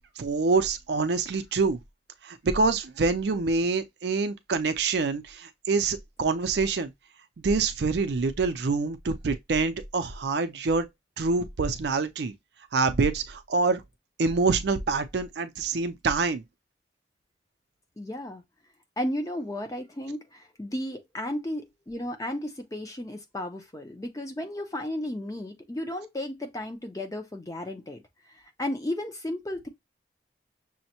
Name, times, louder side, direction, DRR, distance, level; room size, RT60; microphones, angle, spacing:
voice 1, 0.2-1.8 2.2-6.9 7.4-10.9 11.2-12.3 12.7-13.8 14.2-16.4, right 4 dB, 65° right, 0.4 m, -26 dB
voice 2, 18.0-18.4 19.0-28.0 28.3-29.7, left 1 dB, 20° left, 0.5 m, -34 dB
6.2 x 2.1 x 2.8 m
head